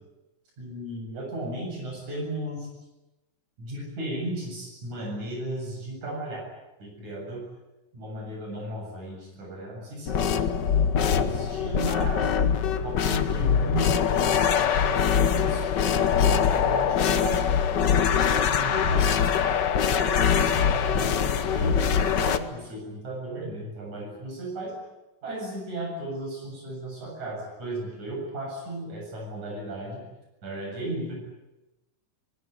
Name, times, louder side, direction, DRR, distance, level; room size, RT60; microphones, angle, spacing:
voice 1, 0.6-2.7 3.6-6.4 6.8-7.4 7.9-10.6 10.9-12.3 12.8-17.5 18.1-19.5 19.9-24.8 25.2-30.0 30.4-31.2, right 1 dB, 60° right, 0 dB, 9.0 m, -35 dB
sound 1, 10.1-22.4, left 7 dB, 80° left, 0.9 m, -23 dB
23.5 x 20.5 x 10.0 m, 1.0 s
omnidirectional pair, 3.7 m